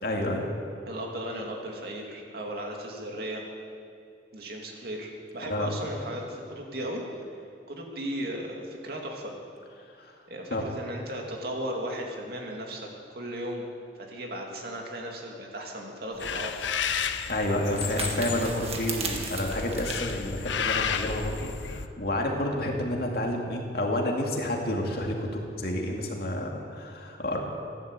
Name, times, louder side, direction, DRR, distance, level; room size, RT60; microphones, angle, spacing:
voice 1, 0.0-0.5 5.4-5.7 10.0-10.1 10.5-10.7 17.3-27.4, left 1 dB, 55° left, 0 dB, 2.3 m, -29 dB
voice 2, 0.9-3.5 4.3-7.2 7.7-9.3 10.3-12.9 13.1-13.6 14.0-16.7, right 1 dB, 55° right, 0 dB, 2.5 m, -36 dB
sound 1, 16.1-21.3, right 5 dB, 35° right, 1.6 m, -38 dB
sound 2, 16.2-21.9, left 7 dB, 80° left, 0.7 m, -32 dB
14.5 x 11.5 x 8.2 m, 2.4 s
head